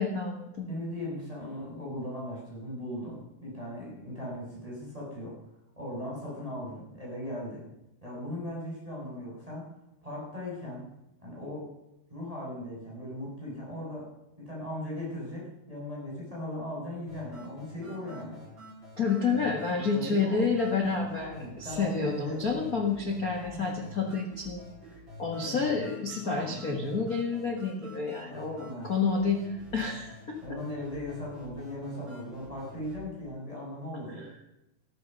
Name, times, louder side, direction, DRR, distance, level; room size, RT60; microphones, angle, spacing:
voice 1, 0.0-0.7 19.0-24.6 25.2-30.4, left 4 dB, 70° left, 1 dB, 0.8 m, -29 dB
voice 2, 0.7-5.4 5.8-7.6 8.0-9.7 10.0-10.8 11.2-11.7 12.1-14.1 14.4-18.4 19.7-20.4 21.1-22.4 23.3-23.9 25.4-25.7 26.2-26.6 28.2-28.9 30.4-34.3, left 1 dB, 10° right, -6 dB, 7.1 m, -38 dB
sound 1, 17.1-33.1, left 1 dB, 25° right, 8.3 m, -48 dB
14.5 x 13.0 x 5.6 m, 0.88 s
omnidirectional pair, 4.9 m